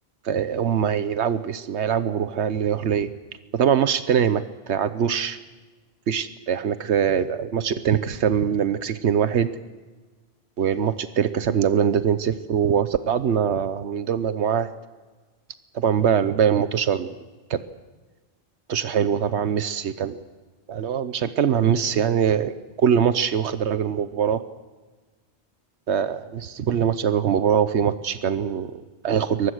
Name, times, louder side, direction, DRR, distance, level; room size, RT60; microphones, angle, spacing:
voice 1, 0.2-3.1 3.5-5.4 6.1-9.5 10.6-14.7 15.7-17.1 17.5-17.6 18.7-20.2 20.7-24.4 25.9-29.5, right 8 dB, 85° right, 12 dB, 1.2 m, -23 dB
23.5 x 19.5 x 6.5 m, 1.3 s
omnidirectional pair, 1.1 m